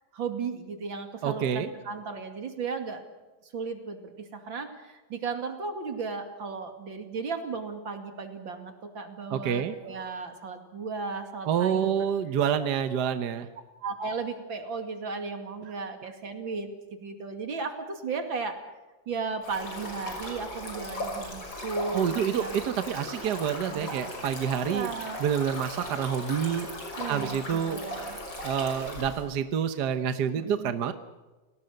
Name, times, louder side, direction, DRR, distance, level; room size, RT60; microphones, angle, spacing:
voice 1, 0.1-3.0 3.5-12.1 13.8-16.7 17.0-18.6 19.1-22.6 23.7-23.9 24.6-25.2 27.0-28.2 30.3-30.7, right 4 dB, 85° right, 6 dB, 3.2 m, -35 dB
voice 2, 1.2-1.7 9.3-9.8 11.4-13.5 21.9-24.9 25.2-26.7 27.1-27.8 28.4-30.9, right 8 dB, 60° right, 10 dB, 1.5 m, -28 dB
Stream, 19.4-29.2, left 1 dB, 75° left, 6.7 m, -38 dB
29.5 x 19.0 x 6.6 m, 1.2 s
omnidirectional pair, 2.1 m